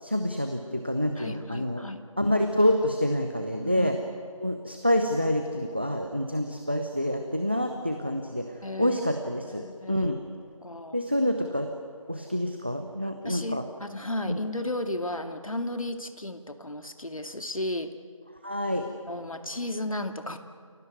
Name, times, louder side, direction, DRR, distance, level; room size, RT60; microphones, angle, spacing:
voice 1, 0.0-1.8 2.2-3.9 4.4-8.4 8.8-10.2 10.9-11.7 12.1-13.6 14.3-14.4 18.4-18.9, left 1 dB, 20° right, 6 dB, 0.7 m, -27 dB
voice 2, 1.2-2.0 3.6-4.2 8.6-9.0 9.4-10.1 10.6-11.0 13.0-17.9 19.1-20.4, left 1 dB, 75° left, 6 dB, 2.4 m, -34 dB
29.0 x 17.5 x 9.5 m, 2.1 s
figure-of-eight pair, 175°, 18 cm